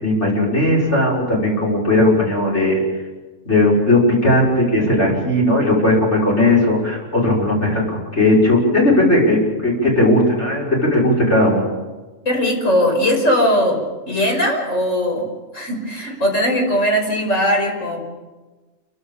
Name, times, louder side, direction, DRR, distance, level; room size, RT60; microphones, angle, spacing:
voice 1, 0.0-2.8 3.5-11.7, left 1 dB, 60° left, -3 dB, 6.6 m, -17 dB
voice 2, 12.2-13.8 14.1-15.2 15.5-18.0, equal, 80° left, 0 dB, 6.1 m, -19 dB
29.0 x 15.0 x 7.2 m, 1.2 s
omnidirectional pair, 1.3 m